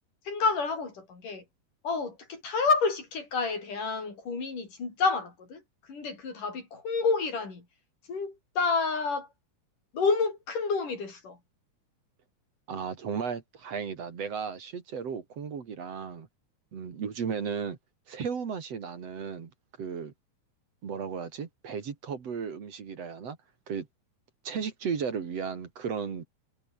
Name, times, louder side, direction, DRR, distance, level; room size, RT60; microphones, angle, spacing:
voice 1, 0.3-1.4 1.8-5.6 5.9-7.7 8.1-9.3 9.9-11.4, left 4 dB, 80° left, 7.8 m, -29 dB
voice 2, 12.7-16.3 16.7-17.8 18.1-19.5 19.8-20.1 20.8-23.4 23.7-23.9 24.5-26.3, right 6 dB, 55° right, 3.4 m, -35 dB
omnidirectional pair, 3.6 m